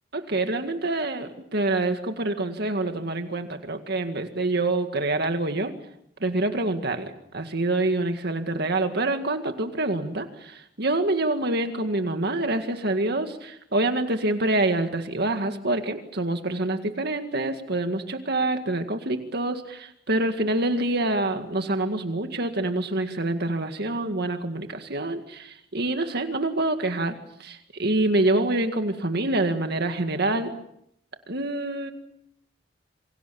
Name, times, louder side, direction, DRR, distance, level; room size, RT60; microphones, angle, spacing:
voice 1, 0.1-5.7 6.2-27.1 27.4-30.5 31.3-31.9, right 2 dB, 60° right, 6 dB, 2.0 m, -26 dB
28.0 x 24.0 x 7.0 m, 0.75 s
head